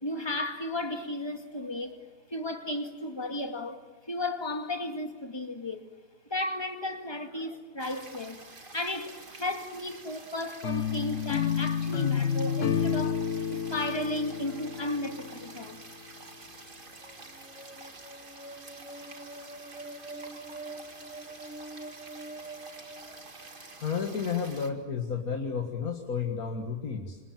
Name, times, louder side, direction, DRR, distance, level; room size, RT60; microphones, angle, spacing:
voice 1, 0.0-2.0 2.3-3.8 4.1-5.8 6.3-8.4 8.7-13.2 13.5-15.8, left 1 dB, 15° left, 2.1 m, -34 dB
sound 1, 7.8-24.7, right 3 dB, 35° right, 2.1 m, -48 dB
sound 2, 10.6-15.7, left 8 dB, 60° left, 1.4 m, -30 dB
sound 3, 16.9-23.8, right 2 dB, 5° right, 1.0 m, -45 dB
voice 2, 23.8-27.2, left 6 dB, 75° left, 2.3 m, -32 dB
27.5 x 26.0 x 7.5 m
omnidirectional pair, 1.5 m